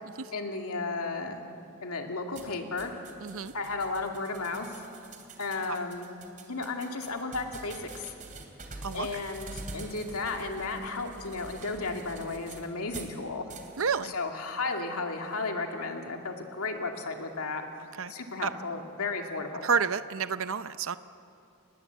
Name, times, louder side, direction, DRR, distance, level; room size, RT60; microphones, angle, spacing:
voice 1, 0.3-1.4 1.8-3.0 3.5-4.8 5.4-6.1 6.5-8.1 8.9-13.5 14.0-17.6 18.1-19.7, left 3 dB, 90° left, 3 dB, 2.5 m, -34 dB
sound 1, 2.3-13.2 13.5-13.9, right 3 dB, 35° right, 3.1 m, -46 dB
voice 2, 3.2-3.5 5.7-5.8 8.8-9.1 13.8-14.1 18.0-18.1 18.4-18.5 19.6-21.0, right 6 dB, 65° right, 12 dB, 0.6 m, -29 dB
29.5 x 20.0 x 8.2 m, 2.6 s
head